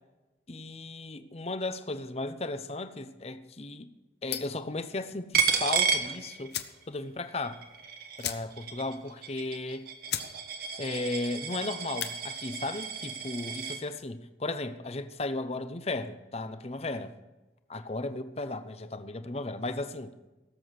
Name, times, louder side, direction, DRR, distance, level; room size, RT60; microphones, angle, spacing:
voice 1, 0.5-3.9 4.2-6.5 6.9-7.6 8.2-9.8 10.8-17.2 17.7-20.1, left 2 dB, 35° left, 0.7 m, -35 dB
sound 1, 4.3-4.7 6.0-6.1 6.5-6.8 7.2-7.3 7.5-7.7 8.2-8.8 9.1-9.2 9.7-9.8 10.1-10.3 10.7-11.0 11.8-12.2, left 10 dB, 60° left, 1.0 m, -36 dB
Coin (dropping), 5.3-6.8 7.2-13.8, right 6 dB, 50° right, 1.2 m, -32 dB
17.5 x 7.7 x 6.5 m
head